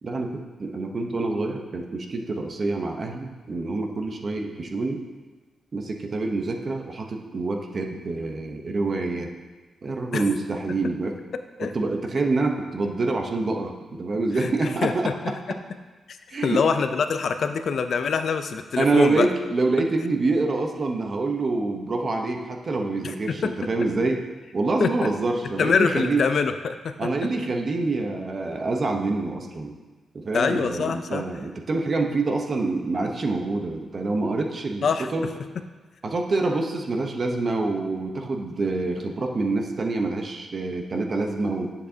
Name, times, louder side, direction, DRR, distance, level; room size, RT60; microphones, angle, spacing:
voice 1, 0.0-5.0 5.7-9.3 9.8-11.2 11.6-15.3 16.3-16.6 18.8-24.2 24.5-26.2 27.0-29.8 30.1-35.3 36.0-41.7, right 3 dB, 40° right, 3 dB, 0.8 m, -26 dB
voice 2, 11.3-11.7 14.4-14.5 14.8-15.3 16.1-16.2 16.4-19.3 23.0-23.5 24.8-25.1 25.6-26.9 30.3-31.2 34.8-35.1, left 5 dB, 60° left, 9 dB, 0.4 m, -24 dB
10.0 x 6.9 x 2.8 m, 1.3 s
cardioid pair, 110°, 0 cm